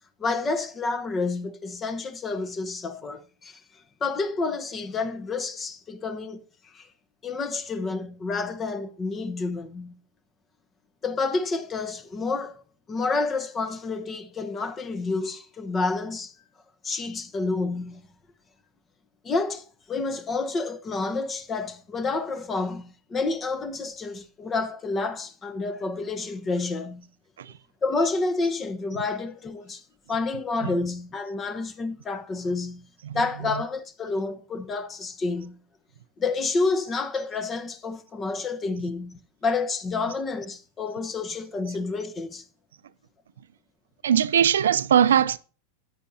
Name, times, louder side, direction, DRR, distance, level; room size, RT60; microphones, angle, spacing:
voice 1, 0.2-3.6 4.0-6.4 6.7-6.9 7.2-9.9 11.0-12.6 12.9-16.3 16.8-18.0 19.2-27.0 27.8-29.8 30.1-32.8 33.1-35.5 36.2-42.4, left 3 dB, 25° left, 1.1 m, -29 dB
voice 2, 44.0-45.4, right 9 dB, 85° right, 0.5 m, -21 dB
13.0 x 9.5 x 2.8 m
hypercardioid pair, 110°, 0 cm